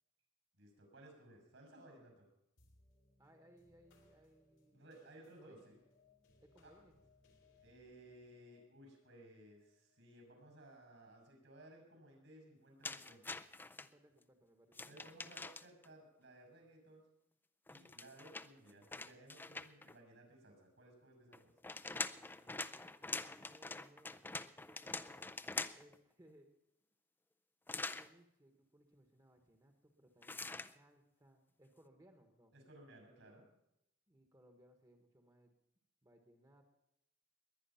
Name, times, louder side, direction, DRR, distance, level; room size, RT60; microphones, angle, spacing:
voice 1, 0.5-2.3 4.7-5.8 6.6-6.7 7.6-13.3 14.9-17.0 17.7-21.5 32.5-33.4, right 1 dB, 75° right, 2 dB, 6.0 m, -59 dB
sound 1, 2.6-11.3, left 3 dB, 85° left, 2.7 m, -71 dB
voice 2, 3.2-5.6 6.4-7.0 13.8-15.0 21.9-25.3 25.7-26.5 27.7-32.5 34.1-35.5 36.0-36.6, right 1 dB, 20° right, 4 dB, 1.2 m, -66 dB
sound 2, 12.8-13.9 14.7-15.9 17.7-19.9 21.3-26.0 27.7-28.1 30.2-30.7, left 3 dB, 10° left, 0.4 m, -45 dB
21.0 x 9.8 x 5.7 m, 0.84 s
head